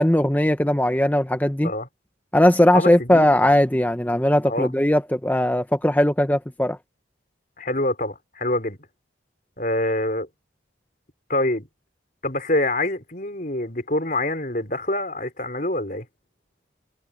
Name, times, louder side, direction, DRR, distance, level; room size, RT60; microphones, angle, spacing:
voice 1, 0.0-1.7 2.3-6.8, left 1 dB, 10° left, 0.9 m, -19 dB
voice 2, 2.7-3.3 4.5-4.7 7.6-8.8 9.6-10.3 11.3-11.7 12.2-16.1, left 1 dB, 45° left, 5.0 m, -25 dB
head